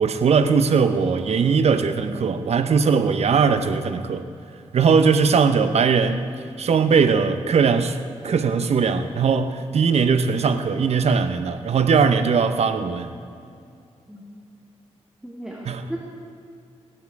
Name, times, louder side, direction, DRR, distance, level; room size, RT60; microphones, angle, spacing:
voice 1, 0.0-4.2 4.7-6.3 6.6-8.0 8.2-13.1 15.7-15.8, right 5 dB, 70° right, 9 dB, 0.9 m, -20 dB
voice 2, 15.2-16.0, right 1 dB, 5° right, -3 dB, 2.1 m, -35 dB
16.5 x 12.5 x 4.8 m, 2.4 s
cardioid pair, 90°, 11 cm